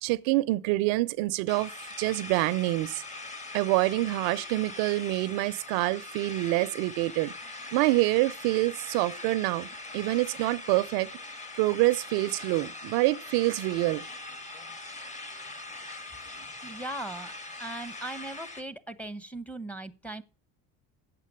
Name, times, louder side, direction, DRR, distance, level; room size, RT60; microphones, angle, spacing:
voice 1, 0.0-1.7 2.0-3.0 3.5-7.3 7.7-9.7 9.9-11.1 11.6-14.0, right 19 dB, 80° right, 0.6 m, -26 dB
sound 1, 1.5-18.6, left 2 dB, 20° left, 1.4 m, -42 dB
voice 2, 16.6-17.3 17.6-20.2, right 1 dB, 5° left, 0.9 m, -38 dB
9.0 x 7.6 x 8.6 m
supercardioid pair, 100°, 36 cm